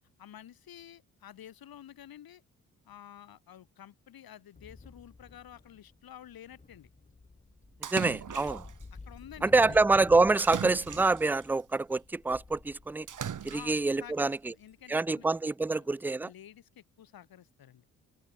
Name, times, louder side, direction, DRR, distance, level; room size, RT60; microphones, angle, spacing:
voice 1, 0.2-2.4 2.8-6.9 9.1-9.8 13.5-15.3 15.7-17.8, left 10 dB, 55° left, 6.0 m, -51 dB
sound 1, 4.5-14.7, left 3 dB, 20° left, 1.8 m, -51 dB
Splash splatter, 7.8-8.8 10.4-11.5 13.1-13.9, right 8 dB, 45° right, 2.9 m, -38 dB
voice 2, 7.9-8.7 9.4-13.1 13.4-14.5 14.9-16.3, right 3 dB, 5° right, 0.4 m, -26 dB
figure-of-eight pair, 45°, 42 cm